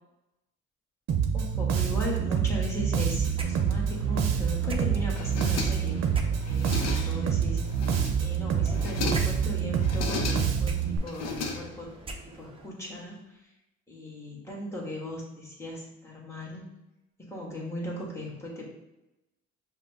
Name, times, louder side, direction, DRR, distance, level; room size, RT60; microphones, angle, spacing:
Bass guitar, 1.1-11.0, right 7 dB, 60° right, 0.7 m, -27 dB
voice 1, 1.3-7.6 8.2-11.9 12.3-13.5 13.9-16.6 17.3-18.7, equal, 10° left, -5 dB, 1.5 m, -37 dB
sound 1, 3.3-12.7, right 2 dB, 20° right, 0.5 m, -43 dB
sound 2, 5.2-6.0 6.4-7.3 7.7-8.3 8.7-9.4 9.8-10.7 11.1-12.0, left 4 dB, 55° left, 0.7 m, -35 dB
5.5 x 2.2 x 3.4 m, 0.95 s
cardioid pair, 90°, 30 cm